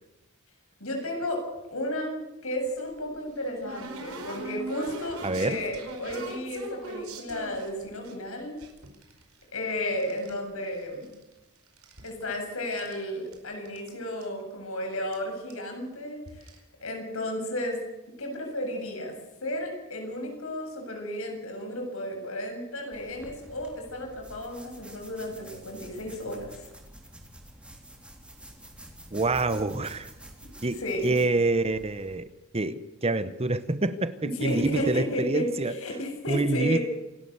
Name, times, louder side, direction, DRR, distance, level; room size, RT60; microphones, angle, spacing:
voice 1, 0.8-1.4 1.7-8.6 9.5-11.1 12.0-16.5 16.8-17.8 18.2-19.2 19.4-26.7 30.7-31.2 34.4-36.8, left 1 dB, 70° left, 2 dB, 7.4 m, -33 dB
sound 1, 2.7-8.1 8.6-10.4 10.6-11.4 11.7-13.0 13.3-13.4 13.6-13.9 14.2-14.3 15.1-15.2 15.5-15.7 16.3-16.6, right 2 dB, 80° right, 4.9 m, -41 dB
voice 2, 5.2-5.6 29.1-30.1 30.6-32.3 32.5-35.7 36.3-36.8, right 2 dB, 30° right, 13 dB, 0.9 m, -27 dB
sound 2, 22.9-32.2, right 1 dB, 5° right, 3.7 m, -48 dB
27.5 x 12.5 x 8.1 m, 0.99 s
head